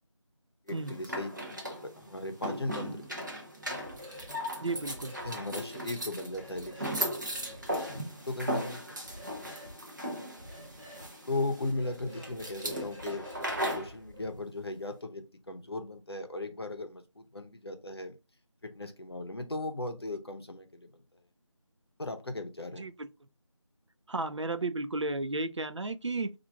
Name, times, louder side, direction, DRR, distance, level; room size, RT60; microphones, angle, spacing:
voice 1, 0.7-3.5 5.2-7.2 7.9-8.0 8.3-8.8 11.3-13.3 13.6-18.2 18.6-21.0 22.0-22.9, left 2 dB, 50° left, 0.7 m, -37 dB
sound 1, 0.7-13.9, equal, 35° right, 0.8 m, -37 dB
sound 2, 3.6-4.3 4.6-5.3 6.3-6.9 7.3-8.0 9.0-9.7 10.4-11.1 11.7-14.4, left 1 dB, 5° right, 2.1 m, -49 dB
voice 2, 4.6-5.2 22.8-23.1 24.1-26.3, right 2 dB, 65° right, 0.5 m, -33 dB
4.2 x 2.5 x 3.4 m
figure-of-eight pair, 170°, 16 cm